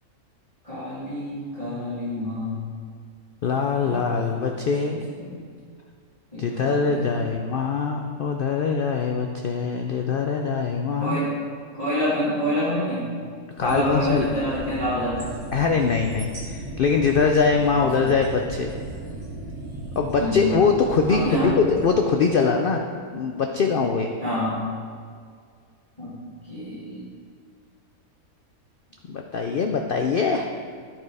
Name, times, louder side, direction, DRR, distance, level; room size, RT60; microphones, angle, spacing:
voice 1, 0.6-2.6 3.8-4.3 5.2-5.4 6.3-7.2 11.0-11.4 11.8-13.1 13.6-15.3 18.0-18.1 20.2-20.5 21.1-21.5 24.2-24.6 26.0-26.2 26.4-27.0, equal, 25° left, -12 dB, 2.4 m, -27 dB
voice 2, 3.4-5.0 6.4-11.2 13.6-14.3 15.5-18.7 20.0-22.8 23.1-24.1 29.1-30.5, left 5 dB, 75° left, 3 dB, 0.5 m, -23 dB
sound 1, 13.6-21.9, right 2 dB, 70° right, 2.2 m, -36 dB
11.0 x 4.5 x 4.8 m, 2.1 s
omnidirectional pair, 1.6 m